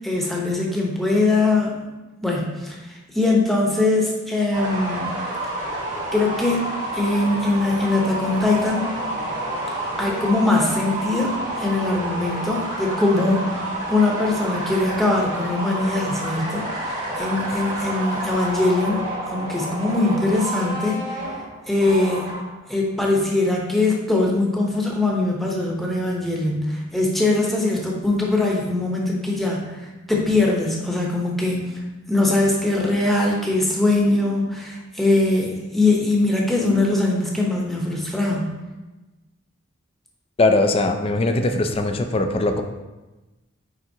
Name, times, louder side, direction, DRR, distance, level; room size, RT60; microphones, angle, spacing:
voice 1, 0.0-1.7 2.2-2.8 3.1-5.1 6.1-8.9 10.0-21.2 21.7-22.3 22.7-29.7 30.1-31.6 32.1-38.5, left 2 dB, ahead, -2 dB, 0.9 m, -21 dB
sound 1, 4.5-22.7, right 1 dB, 40° right, 1.6 m, -29 dB
voice 2, 40.4-42.6, left 2 dB, 30° left, 6 dB, 0.4 m, -20 dB
8.9 x 3.7 x 2.8 m, 1.1 s
head